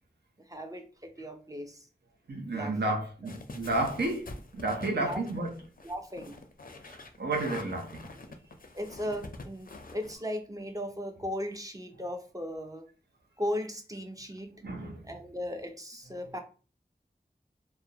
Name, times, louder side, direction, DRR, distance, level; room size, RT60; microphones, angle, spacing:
voice 1, 0.5-1.9 2.5-2.7 5.0-5.5 5.8-6.4 8.7-12.9 13.4-14.5 15.0-16.4, equal, 20° right, 0.4 m, -37 dB
voice 2, 2.3-4.2 4.5-5.5 6.8-8.1 14.6-15.1, right 2 dB, 75° right, 0.5 m, -31 dB
sound 1, 3.3-10.1, left 2 dB, 55° left, 0.4 m, -45 dB
2.4 x 2.0 x 2.7 m
wide cardioid pair, 40°, 17 cm